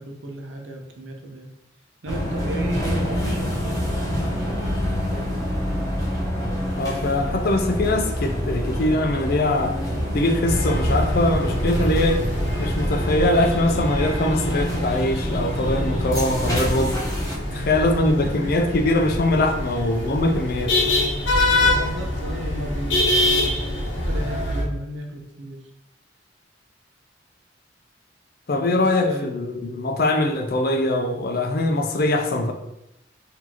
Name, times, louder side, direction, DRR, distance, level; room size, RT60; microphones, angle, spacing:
voice 1, 0.0-1.5 2.0-5.5 17.5-18.5 19.6-19.9 21.5-25.6 28.7-29.3, right 1 dB, 90° right, 2 dB, 0.8 m, -35 dB
sound 1, 2.1-17.4, equal, 20° left, 1.0 m, -27 dB
voice 2, 6.8-9.7 10.1-12.2 12.6-16.9 17.7-20.7 28.5-32.5, left 1 dB, 50° left, 5 dB, 0.5 m, -22 dB
sound 2, 10.4-24.6, left 1 dB, 70° left, 0.9 m, -25 dB
4.6 x 2.7 x 2.9 m, 0.87 s
head